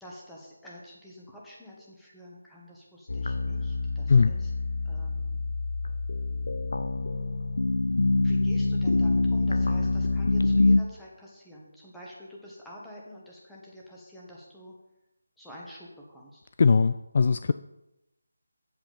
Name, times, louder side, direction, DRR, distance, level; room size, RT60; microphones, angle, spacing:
voice 1, 0.0-4.5 4.8-5.4 8.2-14.7 15.4-16.4, equal, 5° left, -5 dB, 1.5 m, -47 dB
sound 1, 3.1-10.8, left 3 dB, 75° left, 0.7 m, -26 dB
voice 2, 16.6-17.5, left 5 dB, 45° left, 11 dB, 0.3 m, -20 dB
8.1 x 7.5 x 5.3 m, 0.91 s
figure-of-eight pair, 165°, 0 cm